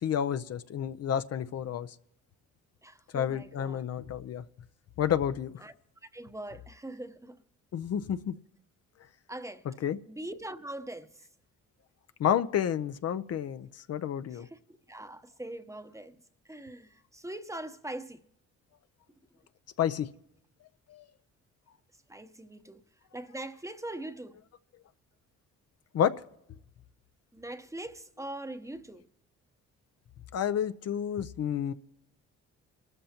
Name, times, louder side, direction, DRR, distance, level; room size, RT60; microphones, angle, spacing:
voice 1, 0.0-1.9 3.1-4.4 5.0-5.6 7.7-8.4 9.8-10.0 12.2-14.5 19.8-20.1 20.9-21.0 25.9-26.1 30.3-31.7, left 9 dB, 55° left, 0.6 m, -30 dB
voice 2, 2.8-3.8 5.6-5.7 6.1-7.4 9.3-9.8 10.1-11.1 14.3-14.6 14.9-16.2 16.5-18.2 22.1-22.8 23.1-24.4 27.3-29.1, right 1 dB, 10° right, 0.9 m, -42 dB
28.0 x 13.5 x 2.9 m
cardioid pair, 90°, 30 cm